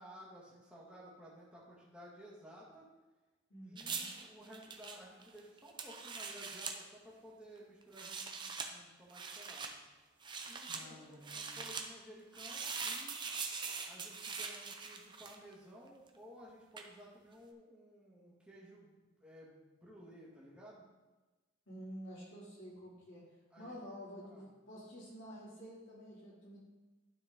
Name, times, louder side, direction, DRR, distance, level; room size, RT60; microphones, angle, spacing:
voice 1, 0.0-2.9 3.6-9.7 10.5-13.2 13.9-20.8 23.5-23.8 24.2-24.5, equal, 5° right, -6 dB, 1.9 m, -55 dB
voice 2, 3.5-4.1 10.6-11.6 21.7-23.2 23.6-26.6, equal, 70° left, -7 dB, 2.8 m, -50 dB
sound 1, 3.8-6.8 7.8-8.7 9.1-9.7 10.2-10.8 11.2-11.9 12.3-15.5 16.8-16.9, right 5 dB, 25° right, 0.6 m, -42 dB
12.0 x 4.6 x 3.8 m, 1.2 s
head